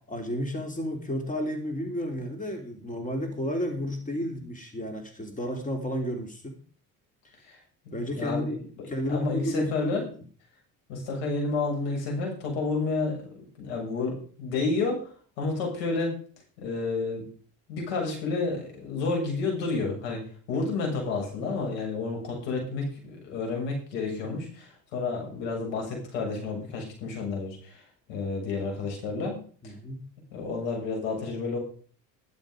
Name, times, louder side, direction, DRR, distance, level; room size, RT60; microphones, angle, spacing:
voice 1, 0.1-6.6 7.9-9.7 10.0-10.1 29.6-30.1, equal, 20° left, 4 dB, 3.4 m, -32 dB
voice 2, 7.8-10.1 10.9-16.2 16.6-17.2 17.7-20.2 20.5-29.4 29.6-29.7 30.3-31.6, left 3 dB, 75° left, 0 dB, 7.0 m, -30 dB
12.0 x 11.0 x 5.1 m, 0.44 s
hypercardioid pair, 75°, 39 cm